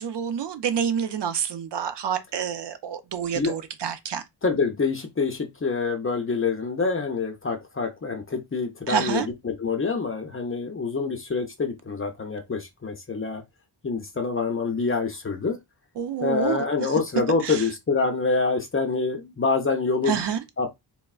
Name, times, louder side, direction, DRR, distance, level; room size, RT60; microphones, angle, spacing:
voice 1, 0.0-4.2 8.9-9.3 16.0-16.6 17.4-17.6 20.1-20.4, right 8 dB, 65° right, 0.5 m, -27 dB
voice 2, 4.4-13.4 13.8-15.6 16.2-20.2 20.6-20.7, left 4 dB, 30° left, 0.5 m, -26 dB
3.3 x 2.1 x 2.3 m
wide cardioid pair, 140°, 45 cm